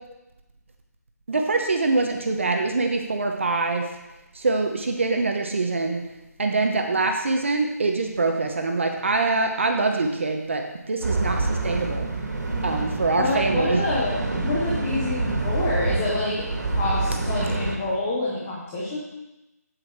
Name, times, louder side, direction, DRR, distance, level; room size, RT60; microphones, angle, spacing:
voice 1, 1.3-3.9 4.3-6.0 6.4-12.1 12.6-13.8, right 3 dB, 45° right, 3 dB, 0.9 m, -24 dB
sound 1, 11.0-17.8, right 2 dB, 90° right, 2.1 m, -27 dB
voice 2, 13.2-19.0, left 2 dB, 10° left, -6 dB, 0.6 m, -27 dB
8.4 x 7.7 x 4.6 m, 0.98 s
hypercardioid pair, 180°, 9 cm